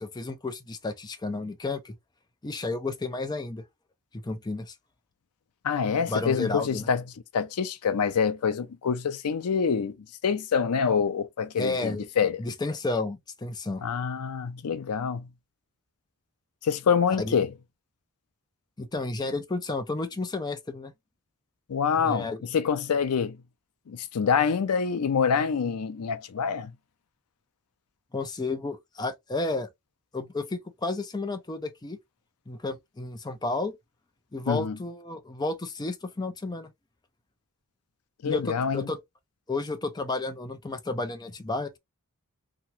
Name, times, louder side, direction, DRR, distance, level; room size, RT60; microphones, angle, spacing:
voice 1, 0.0-1.9 2.4-3.7 4.1-4.8 6.1-6.9 11.6-12.1 12.4-13.9 17.2-17.4 18.8-20.9 22.0-22.4 28.1-29.7 30.1-32.0 32.5-33.7 34.3-36.7 38.2-39.0 39.5-41.8, left 3 dB, 20° left, 0.5 m, -32 dB
voice 2, 5.6-7.0 7.3-10.0 10.2-12.4 13.8-15.3 16.6-17.5 21.7-23.4 23.9-26.7 34.5-34.8 38.2-38.9, left 6 dB, 80° left, 0.5 m, -26 dB
2.9 x 2.4 x 2.7 m
head